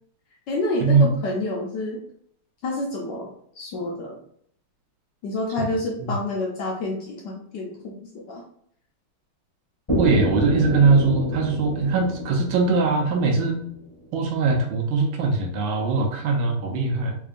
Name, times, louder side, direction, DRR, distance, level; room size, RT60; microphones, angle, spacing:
voice 1, 0.5-2.0 2.6-4.2 5.2-8.4, left 2 dB, 70° left, -1 dB, 1.1 m, -28 dB
sound 1, 9.9-13.8, left 1 dB, 15° left, 1.2 m, -28 dB
voice 2, 10.0-13.6 14.1-17.2, right 4 dB, 75° right, 2 dB, 1.3 m, -21 dB
3.7 x 3.5 x 2.4 m, 0.67 s
omnidirectional pair, 2.4 m